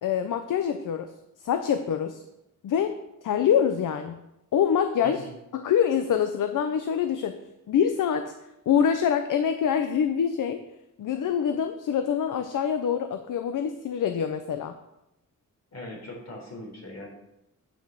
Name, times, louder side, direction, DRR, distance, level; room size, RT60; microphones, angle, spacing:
voice 1, 0.0-1.1 1.4-2.2 2.6-2.9 3.2-4.2 4.5-5.2 5.5-7.4 7.7-8.3 8.7-10.6 11.0-14.7, left 8 dB, 70° left, 8 dB, 0.8 m, -25 dB
voice 2, 15.7-17.1, left 2 dB, 50° left, 0 dB, 4.1 m, -40 dB
8.8 x 6.9 x 6.7 m, 0.87 s
cardioid pair, 105°, 32 cm